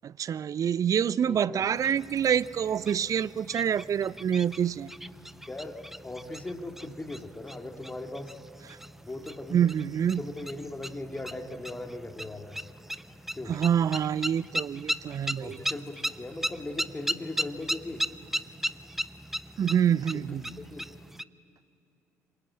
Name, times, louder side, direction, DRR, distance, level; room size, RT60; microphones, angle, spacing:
voice 1, 0.0-4.9 9.5-10.2 13.5-15.6 19.6-20.5, right 8 dB, 45° right, 21 dB, 0.5 m, -26 dB
voice 2, 1.3-1.7 5.5-8.3 9.1-9.7 10.2-12.6 13.3-13.5 15.4-18.0 20.1-20.2 20.6-20.9, left 2 dB, 20° left, 5 dB, 2.3 m, -39 dB
sound 1, 1.7-21.2, right 1 dB, 5° right, 0.7 m, -38 dB
26.5 x 26.0 x 8.7 m, 2.6 s
figure-of-eight pair, 45°, 8 cm